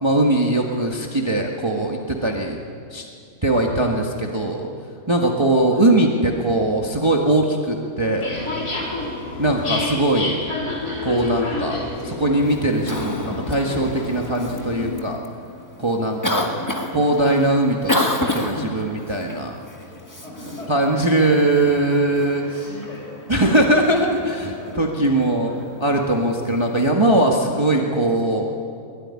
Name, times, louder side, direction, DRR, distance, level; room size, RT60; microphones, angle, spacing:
voice 1, 0.0-2.6 2.9-3.1 3.4-4.7 5.1-8.5 9.4-10.4 11.0-15.2 15.8-16.5 16.9-19.6 20.7-22.4 23.3-25.5 25.8-28.5, right 1 dB, 20° right, 0 dB, 1.7 m, -20 dB
sound 1, 8.2-14.9, left 2 dB, 80° left, 4.2 m, -29 dB
Cough, 12.4-26.9, left 1 dB, 15° left, 1.6 m, -31 dB
voice 2, 16.3-17.2 20.0-21.5 22.0-23.3 24.6-25.0 25.5-25.6 27.5-27.7, equal, 45° left, -4 dB, 5.4 m, -40 dB
23.0 x 21.0 x 9.8 m, 2.4 s
omnidirectional pair, 1.6 m